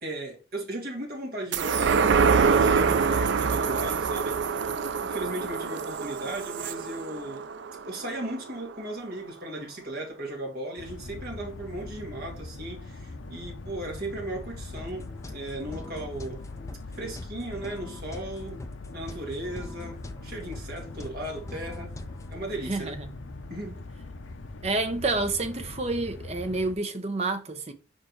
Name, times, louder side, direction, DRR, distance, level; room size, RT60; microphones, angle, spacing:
voice 1, 0.0-4.4 4.7-7.5 7.9-16.4 16.9-18.6 18.9-21.9 22.3-23.0 23.5-23.8, right 1 dB, 50° right, 2.0 m, -36 dB
sound 1, 1.5-8.3 8.7-8.8, right 5 dB, 65° right, 0.4 m, -25 dB
sound 2, 10.8-26.7, left 2 dB, 80° left, 0.7 m, -41 dB
sound 3, 14.8-22.4, left 1 dB, 15° left, 0.5 m, -44 dB
voice 2, 22.7-23.1 24.6-27.7, right 3 dB, 35° right, 0.8 m, -29 dB
5.0 x 4.5 x 4.6 m
head